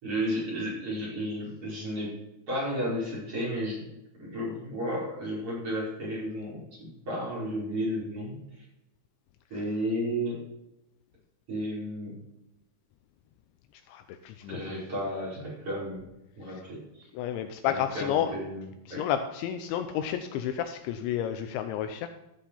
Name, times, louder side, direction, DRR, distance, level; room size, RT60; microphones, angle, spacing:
voice 1, 0.0-2.1 2.5-8.6 9.5-10.4 11.5-12.2 14.5-16.0 16.4-17.1 17.7-18.6 18.9-19.0, equal, 30° right, -6 dB, 5.8 m, -33 dB
voice 2, 13.7-14.6 16.5-16.6 17.1-18.3 18.9-22.1, left 10 dB, 80° left, 8 dB, 2.9 m, -31 dB
13.0 x 7.3 x 5.6 m, 0.87 s
omnidirectional pair, 5.5 m